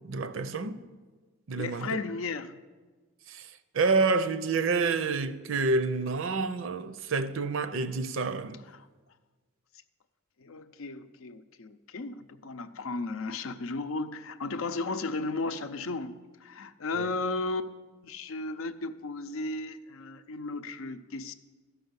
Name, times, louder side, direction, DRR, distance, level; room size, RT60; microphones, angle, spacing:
voice 1, 0.0-0.8 1.5-1.9 3.3-3.5 3.7-8.6 17.0-17.1, right 4 dB, 65° right, 0.6 m, -28 dB
voice 2, 1.6-2.5 8.7-8.9 10.4-17.7 18.0-21.3, left 3 dB, 80° left, 0.6 m, -35 dB
12.5 x 5.5 x 8.0 m
head